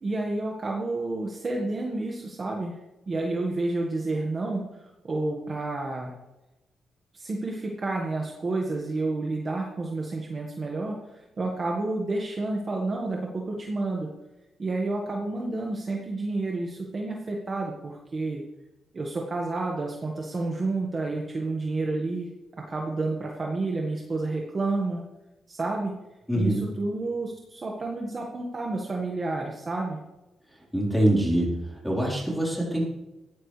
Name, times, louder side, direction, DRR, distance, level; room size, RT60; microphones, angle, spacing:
voice 1, 0.0-2.7 3.1-6.2 7.1-14.1 14.6-18.4 18.9-22.3 22.7-25.0 25.5-26.0 26.3-30.0, right 2 dB, 25° right, -1 dB, 1.6 m, -30 dB
voice 2, 26.3-26.6 30.7-31.6 31.8-32.8, right 1 dB, ahead, -5 dB, 4.3 m, -24 dB
19.0 x 15.0 x 3.4 m, 1.0 s
wide cardioid pair, 175°, 0 cm